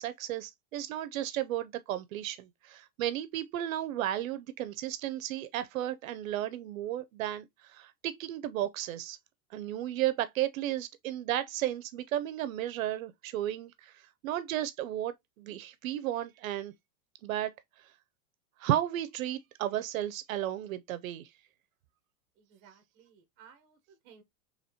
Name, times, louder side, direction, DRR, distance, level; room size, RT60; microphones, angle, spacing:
voice 1, 0.0-9.2 9.5-16.7 17.2-17.5 18.6-21.3, right 12 dB, 70° right, 0.5 m, -34 dB
voice 2, 22.4-24.2, right 7 dB, 25° right, 0.7 m, -58 dB
4.1 x 3.0 x 2.7 m
supercardioid pair, 175°, 43 cm